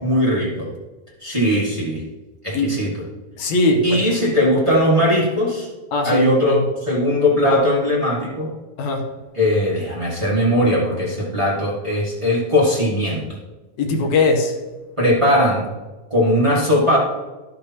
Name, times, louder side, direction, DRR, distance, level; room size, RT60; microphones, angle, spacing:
voice 1, 0.0-0.7 1.2-2.0 2.4-3.0 3.8-5.7 6.0-8.5 9.3-13.2 15.0-15.7 16.1-17.0, equal, 35° right, -6 dB, 0.4 m, -19 dB
voice 2, 3.4-4.1 5.9-6.6 8.8-9.1 13.8-14.5, left 2 dB, 70° left, 3 dB, 2.0 m, -20 dB
12.0 x 6.7 x 2.8 m, 1.2 s
omnidirectional pair, 3.8 m